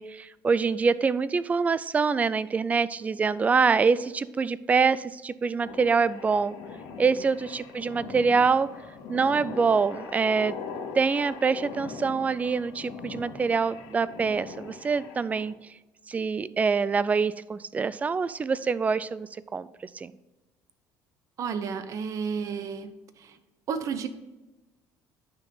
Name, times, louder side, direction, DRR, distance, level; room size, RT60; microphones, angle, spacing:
voice 1, 0.0-6.6 7.0-8.7 9.1-10.5 10.9-15.5 16.1-19.7 19.9-20.1, right 5 dB, 20° right, 17 dB, 0.3 m, -25 dB
sound 1, 5.6-15.5, left 5 dB, 90° left, 1.6 m, -41 dB
voice 2, 21.4-22.9 23.2-23.4 23.7-24.1, right 6 dB, 45° right, 11 dB, 0.8 m, -31 dB
9.6 x 6.0 x 3.9 m, 1.1 s
cardioid pair, 135°, 7 cm